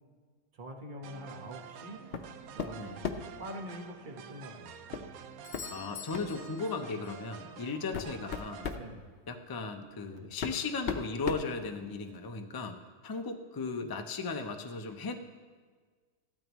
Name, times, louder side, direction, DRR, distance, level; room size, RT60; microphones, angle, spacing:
voice 1, 0.5-2.0 2.5-5.1 8.7-9.1 10.1-10.3, equal, 35° right, 2 dB, 1.3 m, -45 dB
sound 1, 1.0-8.8, right 8 dB, 85° right, 1.1 m, -48 dB
sound 2, 2.1-2.3 2.6-3.4 4.9-5.1 5.5-5.7 6.1-6.3 7.2-7.3 7.7-8.9 9.9-10.0 10.4-12.2, left 6 dB, 55° left, 0.8 m, -36 dB
Doorbell, 5.4-7.3 11.4-11.5, left 7 dB, 75° left, 1.2 m, -47 dB
voice 2, 5.7-8.7 9.3-12.8 13.0-15.1, left 4 dB, 30° left, 5 dB, 0.4 m, -36 dB
15.0 x 12.5 x 3.1 m, 1.5 s
omnidirectional pair, 1.4 m